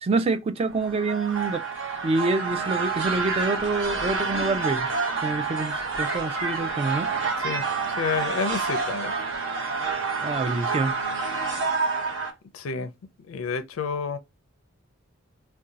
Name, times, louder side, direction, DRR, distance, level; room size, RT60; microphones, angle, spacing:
voice 1, 0.0-1.6 2.0-4.9 5.2-7.1 10.2-10.9, right 3 dB, 30° right, 0.3 m, -26 dB
sound 1, 0.7-12.3, right 4 dB, 65° right, 0.8 m, -28 dB
voice 2, 7.4-9.1 12.5-12.9 13.3-14.2, left 5 dB, 85° left, 0.4 m, -30 dB
2.6 x 2.2 x 3.8 m
head